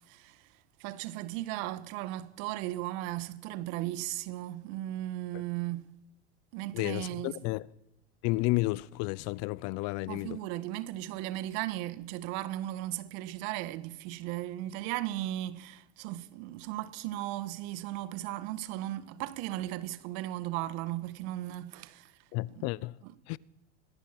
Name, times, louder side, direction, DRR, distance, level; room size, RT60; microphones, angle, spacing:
voice 1, 0.1-0.5 0.8-5.9 6.5-7.4 10.1-22.1 22.6-22.7 23.0-23.2, right 15 dB, 60° right, 1.6 m, -36 dB
voice 2, 6.7-7.7 8.2-10.4 22.3-23.0 23.3-23.4, left 21 dB, 50° left, 0.6 m, -32 dB
22.0 x 21.5 x 6.0 m
hypercardioid pair, 95°, 33 cm